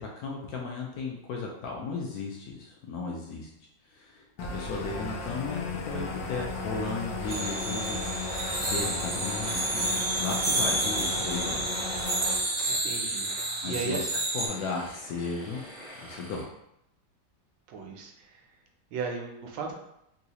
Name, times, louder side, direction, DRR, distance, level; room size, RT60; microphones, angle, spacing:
voice 1, 0.0-3.5 3.9-8.0 8.6-11.6 13.6-14.1 14.3-15.6 16.0-16.5, left 4 dB, 75° left, 0 dB, 0.9 m, -35 dB
sound 1, 4.4-12.4, left 3 dB, 90° left, 1.4 m, -35 dB
sound 2, 7.2-16.4, equal, 35° left, 0.6 m, -46 dB
sound 3, 7.3-14.5, right 2 dB, 55° right, 0.5 m, -30 dB
voice 2, 12.7-14.0 17.7-18.5 18.9-19.7, right 5 dB, 75° right, 2 dB, 1.2 m, -36 dB
3.9 x 2.3 x 2.8 m, 0.79 s
omnidirectional pair, 2.0 m